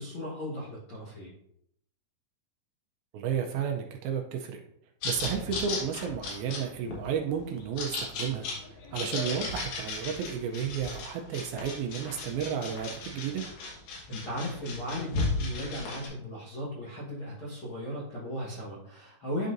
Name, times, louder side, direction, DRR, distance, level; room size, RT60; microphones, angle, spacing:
voice 1, 0.0-1.4 14.1-19.5, left 1 dB, 65° left, -7 dB, 1.2 m, -36 dB
voice 2, 3.1-4.6 5.0-13.4, right 7 dB, 80° right, 3 dB, 2.3 m, -32 dB
sound 1, 5.0-16.1, left 3 dB, 85° left, 3.7 m, -36 dB
11.0 x 4.0 x 2.6 m, 0.74 s
omnidirectional pair, 4.6 m